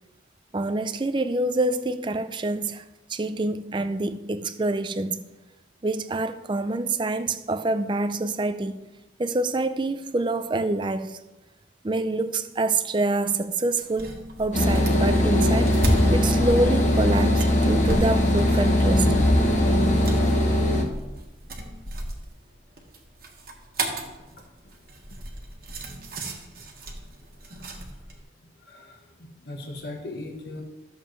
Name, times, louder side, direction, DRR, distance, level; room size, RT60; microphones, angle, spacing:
voice 1, 0.5-2.8 3.1-5.2 5.8-8.8 9.2-11.2 11.8-19.1, right 2 dB, 25° right, 0.4 m, -26 dB
sound 1, 13.8-28.2, right 1 dB, 50° right, 1.4 m, -35 dB
sound 2, 14.5-20.8, left 1 dB, 40° left, 1.3 m, -20 dB
voice 2, 24.3-24.7 27.0-27.1 27.6-27.7 28.6-30.6, left 2 dB, 60° left, 1.3 m, -40 dB
13.5 x 7.1 x 3.1 m
head